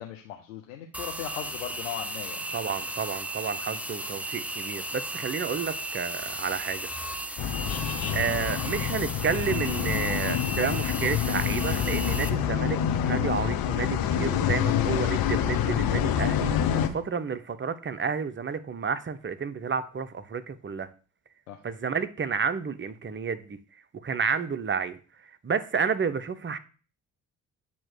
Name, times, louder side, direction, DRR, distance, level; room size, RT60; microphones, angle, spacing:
voice 1, 0.0-2.5 3.7-3.8 21.5-21.6, left 10 dB, 85° left, 2 dB, 0.7 m, -38 dB
sound 1, 0.9-12.3, right 1 dB, 5° right, 0.7 m, -35 dB
voice 2, 2.5-6.9 8.1-20.9 21.6-23.6 24.0-25.0 25.4-26.6, right 6 dB, 30° right, 12 dB, 0.9 m, -30 dB
sound 2, 7.4-16.9, left 9 dB, 60° left, 0.9 m, -27 dB
8.5 x 3.1 x 6.2 m, 0.38 s
hypercardioid pair, 45°, 40 cm